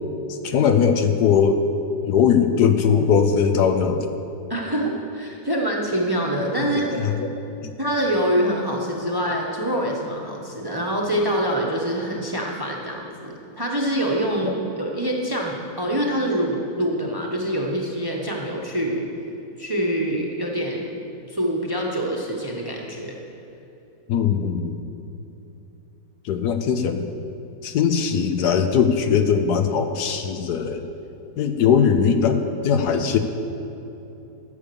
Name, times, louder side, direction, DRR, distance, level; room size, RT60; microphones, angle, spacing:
voice 1, 0.3-1.6 2.0-4.1 6.8-7.3 7.6-7.7 14.4-14.5 24.1-24.8 26.2-27.0 27.6-30.9 31.4-33.2, left 7 dB, 70° left, 7 dB, 1.2 m, -20 dB
voice 2, 4.5-6.9 7.8-19.1 19.6-20.9 21.3-23.2, right 1 dB, 15° right, -1 dB, 1.0 m, -25 dB
13.0 x 7.1 x 7.0 m, 2.9 s
omnidirectional pair, 1.9 m